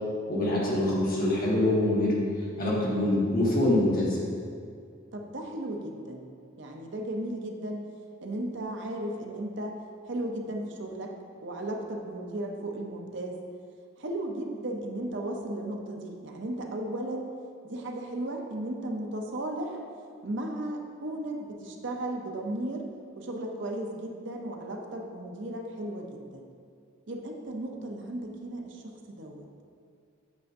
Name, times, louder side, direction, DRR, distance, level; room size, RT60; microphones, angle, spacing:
voice 1, 0.3-2.2 2.6-4.2, left 1 dB, 45° left, -5 dB, 1.4 m, -25 dB
voice 2, 5.1-6.3 6.6-7.8 8.2-9.8 10.1-11.2 11.4-13.4 14.0-17.3 17.6-19.8 20.2-22.9 23.2-26.4 27.1-29.5, right 1 dB, 60° right, 2 dB, 0.7 m, -35 dB
8.2 x 6.3 x 2.6 m, 2.2 s
head